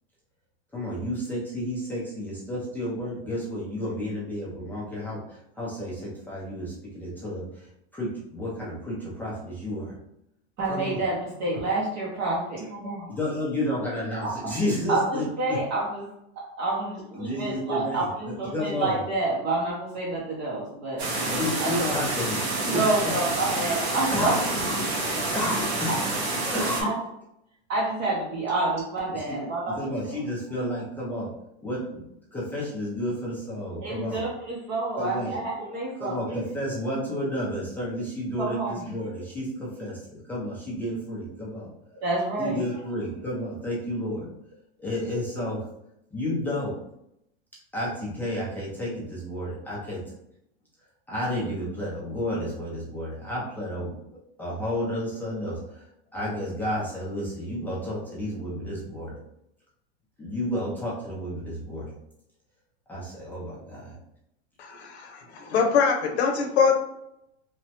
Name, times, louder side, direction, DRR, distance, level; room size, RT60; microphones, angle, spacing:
voice 1, 0.7-9.9 10.7-11.0 13.1-15.6 17.1-19.0 21.3-22.9 24.1-25.1 25.3-26.0 26.5-26.9 29.1-29.4 29.7-31.3 31.6-34.3 35.0-35.4 36.0-41.7 42.4-44.3 44.8-45.7 46.1-46.7 47.7-50.0 51.1-55.8 56.1-59.2 60.2-61.9 62.9-64.0, left 1 dB, 5° left, -7 dB, 0.4 m, -31 dB
voice 2, 10.6-13.1 14.2-14.3 14.9-16.0 16.6-21.0 21.6-21.7 22.7-24.5 26.8-26.9 27.7-29.8 30.0-30.1 33.8-36.2 38.4-38.9 42.0-42.6, right 2 dB, 35° right, -5 dB, 0.6 m, -28 dB
sound 1, 21.0-26.8, right 2 dB, 80° right, 0.9 m, -28 dB
voice 3, 64.6-66.7, left 6 dB, 85° left, 2 dB, 0.7 m, -23 dB
3.0 x 2.2 x 2.8 m, 0.80 s
supercardioid pair, 140°, 32 cm